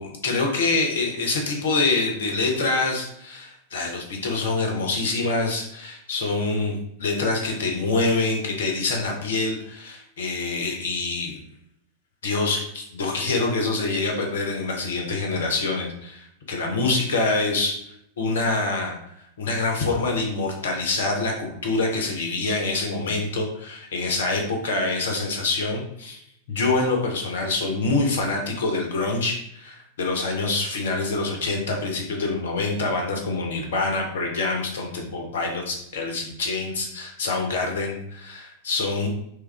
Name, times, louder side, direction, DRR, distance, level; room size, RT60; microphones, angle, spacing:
voice 1, 0.0-11.4 12.2-17.8 18.2-19.0 19.4-26.2 26.5-39.1, left 3 dB, 60° left, 2 dB, 0.7 m, -25 dB
3.2 x 2.4 x 3.3 m, 0.72 s
figure-of-eight pair, 90°, 0 cm